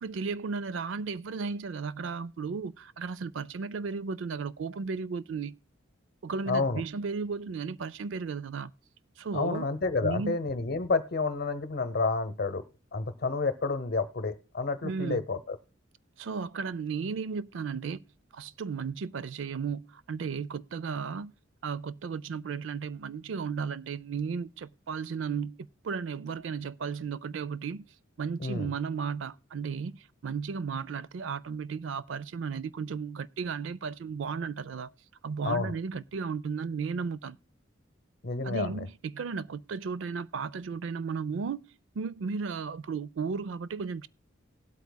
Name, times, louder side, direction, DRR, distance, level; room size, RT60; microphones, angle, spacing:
voice 1, 0.0-5.6 6.2-8.7 9.2-9.7 10.0-10.4 14.8-15.2 16.2-18.0 18.3-21.3 21.6-27.8 28.2-34.9 35.2-37.4 38.4-41.6 41.9-44.1, right 5 dB, 70° right, 0.4 m, -34 dB
voice 2, 6.5-6.8 9.3-12.6 12.9-15.6 28.4-28.7 35.4-35.7 38.2-38.9, left 3 dB, 50° left, 0.8 m, -30 dB
19.0 x 8.2 x 2.2 m
head